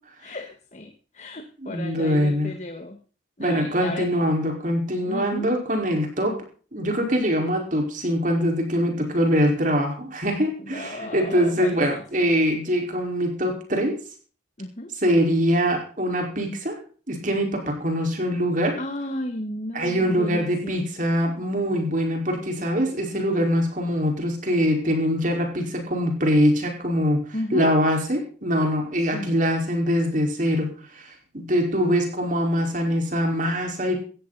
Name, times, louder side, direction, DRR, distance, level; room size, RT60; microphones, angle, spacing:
voice 1, 0.2-3.0 3.4-4.2 5.1-5.5 10.6-12.0 14.6-14.9 18.8-20.8 27.3-27.7 29.0-29.3 31.8-32.0, left 1 dB, 35° left, 6 dB, 1.7 m, -34 dB
voice 2, 1.6-2.5 3.4-6.4 6.7-14.0 15.0-16.8 17.1-18.8 19.7-27.2 27.5-34.0, equal, 40° right, 2 dB, 5.0 m, -23 dB
18.5 x 14.5 x 4.2 m, 0.40 s
head